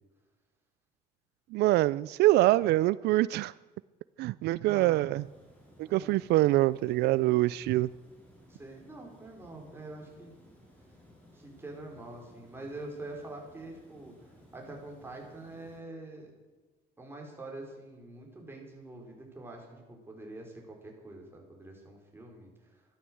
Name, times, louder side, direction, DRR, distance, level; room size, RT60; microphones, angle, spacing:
voice 1, 1.5-3.5 4.2-5.2 5.8-7.9, right 17 dB, 80° right, 19 dB, 0.4 m, -25 dB
voice 2, 4.6-5.0 5.8-6.2 8.5-10.3 11.3-16.3 17.0-22.8, right 2 dB, 15° right, 0 dB, 5.3 m, -45 dB
Water, 5.1-15.8, equal, 10° left, 6.1 m, -58 dB
13.5 x 12.5 x 7.9 m, 1.2 s
cardioid pair, 110°, 17 cm